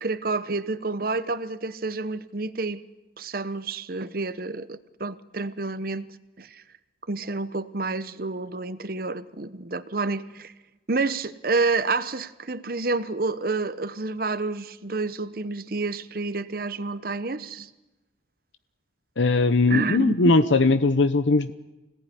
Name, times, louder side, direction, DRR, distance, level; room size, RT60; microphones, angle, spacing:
voice 1, 0.0-2.8 3.2-6.1 6.4-6.6 7.1-10.5 10.9-17.7 19.7-20.3, right 3 dB, 50° right, 1.0 m, -29 dB
voice 2, 19.2-21.5, left 3 dB, 85° left, 0.9 m, -20 dB
26.0 x 18.0 x 9.9 m
head